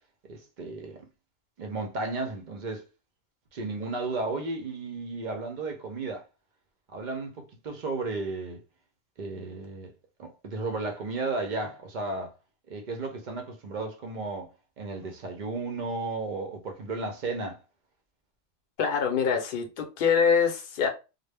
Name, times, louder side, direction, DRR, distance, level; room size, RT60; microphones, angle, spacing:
voice 1, 0.3-1.0 1.6-2.9 3.5-6.2 6.9-8.6 9.2-9.9 10.2-12.3 12.7-17.6, right 3 dB, 55° right, 0.5 m, -34 dB
voice 2, 18.8-20.9, left 6 dB, 55° left, 0.7 m, -24 dB
2.1 x 2.0 x 3.2 m
omnidirectional pair, 1.2 m